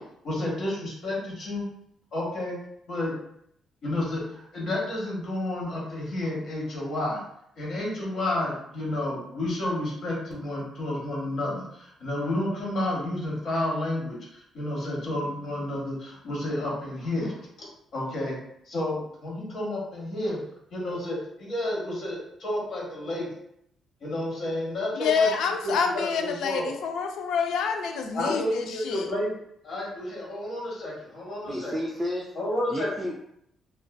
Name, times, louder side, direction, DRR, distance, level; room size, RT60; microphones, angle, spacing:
voice 1, 0.2-1.7 2.1-2.6 2.9-3.1 3.8-7.2 7.6-17.3 17.9-18.4 18.7-20.4 20.7-23.3 24.0-25.3 25.6-26.7 28.1-29.3 29.6-31.7 32.4-32.9, left 1 dB, 60° left, -4 dB, 1.0 m, -30 dB
voice 2, 24.9-29.1, left 5 dB, 80° left, 5 dB, 0.3 m, -27 dB
voice 3, 31.5-32.3 32.7-33.2, left 1 dB, 10° right, -2 dB, 0.3 m, -31 dB
2.5 x 2.2 x 2.2 m, 0.74 s
cardioid pair, 90°, 0 cm